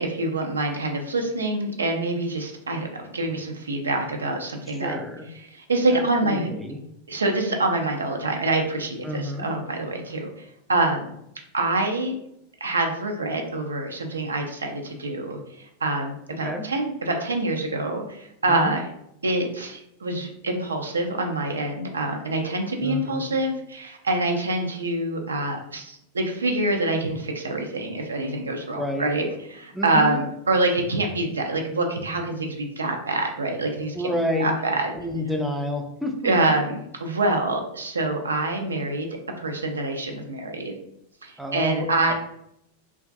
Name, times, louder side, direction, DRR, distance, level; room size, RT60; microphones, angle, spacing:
voice 1, 0.0-5.0 5.5-6.5 7.1-11.1 11.5-12.1 12.6-18.8 19.2-34.1 34.4-34.9 36.2-39.1 39.4-40.7 41.2-42.1, right 2 dB, 75° right, 3 dB, 0.4 m, -26 dB
voice 2, 4.7-5.3 5.9-6.8 9.0-9.5 16.4-16.6 18.5-18.8 22.8-23.3 28.7-29.1 29.7-30.2 33.9-34.5 34.9-36.3 41.4-42.1, left 1 dB, 5° right, 2 dB, 0.4 m, -29 dB
2.5 x 2.2 x 2.4 m, 0.77 s
figure-of-eight pair, 90°, 0 cm